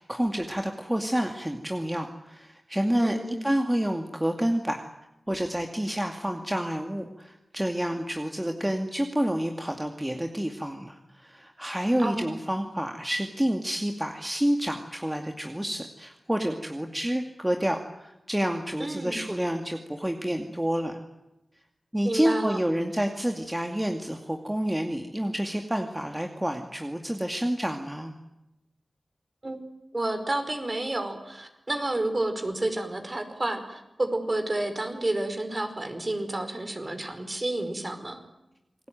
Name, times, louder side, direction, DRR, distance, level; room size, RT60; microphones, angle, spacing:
voice 1, 0.0-4.9 5.3-21.0 21.9-28.1, equal, 10° right, 4 dB, 2.4 m, -29 dB
voice 2, 3.0-3.4 12.0-12.3 18.8-19.2 22.0-22.6 29.4-29.6 29.9-38.2, right 1 dB, 35° right, 7 dB, 5.2 m, -30 dB
28.5 x 20.0 x 9.3 m, 0.92 s
wide cardioid pair, 60°, 0 cm